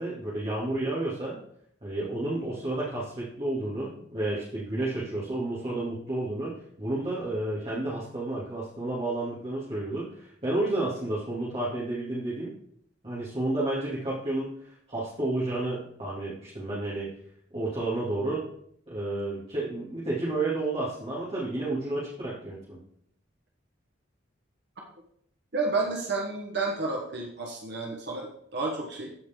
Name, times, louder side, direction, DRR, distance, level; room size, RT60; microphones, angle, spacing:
voice 1, 0.0-1.4 1.8-6.5 6.8-12.5 13.0-17.1 17.5-18.5 18.9-22.8, right 2 dB, 30° right, -9 dB, 2.7 m, -31 dB
voice 2, 25.5-29.1, right 3 dB, 65° right, 0 dB, 1.3 m, -31 dB
15.0 x 4.9 x 3.8 m, 0.67 s
head